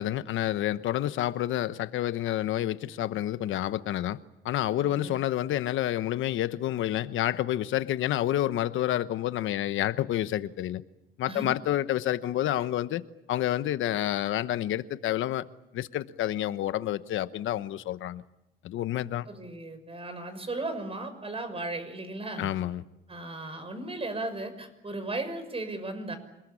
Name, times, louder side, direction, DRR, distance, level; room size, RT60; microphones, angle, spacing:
voice 1, 0.0-4.2 4.4-10.8 11.2-13.0 13.3-15.5 15.7-18.2 18.6-19.3 22.4-22.8, left 13 dB, 80° left, 1.1 m, -29 dB
voice 2, 4.8-5.1 11.3-11.5 19.3-22.5 23.1-26.2, right 2 dB, 30° right, 6.0 m, -36 dB
28.0 x 20.0 x 8.6 m
cardioid pair, 90°, 20 cm